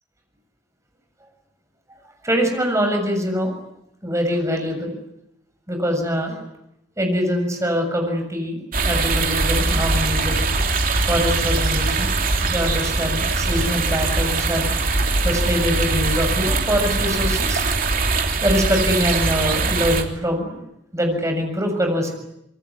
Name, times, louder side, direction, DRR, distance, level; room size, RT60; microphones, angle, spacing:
voice 1, 2.2-3.5 4.0-4.9 5.7-6.4 7.0-10.4 11.1-12.1 12.4-14.7 15.2-17.6 18.4-20.6 20.9-22.1, equal, 15° right, 4 dB, 7.0 m, -23 dB
sound 1, 8.7-20.0, right 3 dB, 50° right, 3.2 m, -21 dB
26.5 x 22.5 x 9.9 m, 0.82 s
head